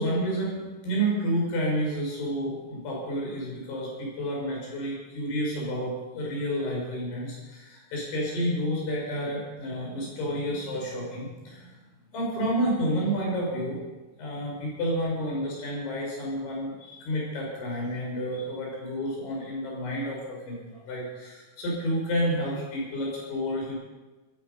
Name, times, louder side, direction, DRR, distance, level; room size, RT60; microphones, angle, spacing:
voice 1, 0.0-11.7 12.1-13.8 14.2-23.7, equal, 70° left, -3 dB, 8.7 m, -30 dB
16.5 x 14.5 x 5.5 m, 1.2 s
omnidirectional pair, 5.6 m